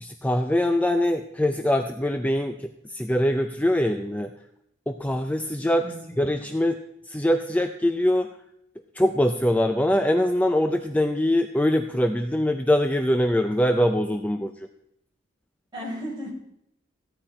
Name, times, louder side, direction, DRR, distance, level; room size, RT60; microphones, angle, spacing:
voice 1, 0.0-4.3 4.9-5.9 6.2-6.8 7.1-8.3 9.0-14.5, left 1 dB, 10° left, 6 dB, 0.4 m, -23 dB
voice 2, 5.8-6.4 15.7-16.3, equal, 25° right, -4 dB, 4.4 m, -35 dB
15.5 x 9.9 x 4.4 m, 0.78 s
head